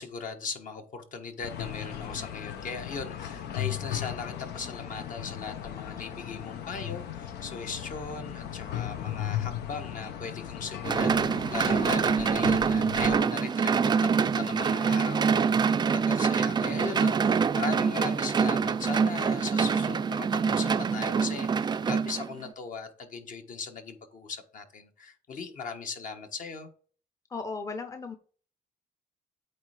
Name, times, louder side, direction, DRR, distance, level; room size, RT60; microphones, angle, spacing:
voice 1, 0.0-26.7, left 5 dB, 55° left, 1.3 m, -38 dB
sound 1, 1.4-13.2, left 10 dB, 90° left, 0.9 m, -37 dB
sound 2, 10.8-22.5, right 6 dB, 25° right, 0.4 m, -25 dB
voice 2, 27.3-28.2, left 4 dB, 20° left, 0.7 m, -36 dB
8.6 x 3.3 x 5.0 m
cardioid pair, 115°, 16 cm